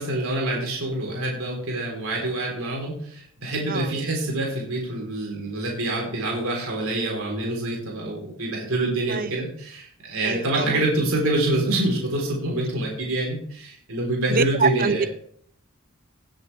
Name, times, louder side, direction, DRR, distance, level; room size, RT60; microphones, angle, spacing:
voice 1, 0.0-15.0, right 1 dB, 80° right, -2 dB, 4.1 m, -26 dB
voice 2, 10.2-10.7 14.3-15.1, right 5 dB, 40° right, 14 dB, 0.6 m, -25 dB
18.5 x 7.9 x 3.5 m, 0.64 s
head